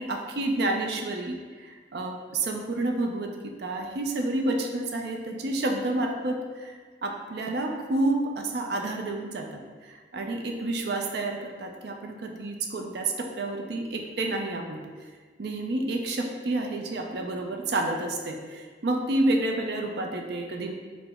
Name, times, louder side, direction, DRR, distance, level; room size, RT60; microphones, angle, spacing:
voice 1, 0.0-6.8 7.0-9.6 9.9-14.8 15.4-20.7, right 2 dB, 60° right, 2 dB, 0.5 m, -29 dB
4.8 x 2.1 x 3.5 m, 1.5 s
head